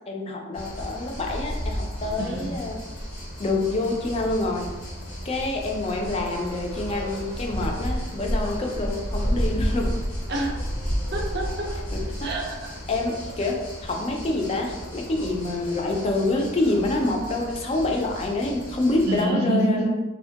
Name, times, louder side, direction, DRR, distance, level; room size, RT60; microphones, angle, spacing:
voice 1, 0.1-2.8 3.4-4.7 5.2-9.9 11.9-12.3 12.9-19.9, left 2 dB, 30° left, 1 dB, 0.3 m, -27 dB
sound 1, 0.5-19.2, equal, 85° left, 0.9 m, -32 dB
voice 2, 2.2-2.5 10.3-10.6 11.1-11.7 12.2-12.7 19.0-19.9, right 1 dB, 50° right, 0 dB, 0.5 m, -26 dB
2.8 x 2.1 x 2.7 m, 1.1 s
head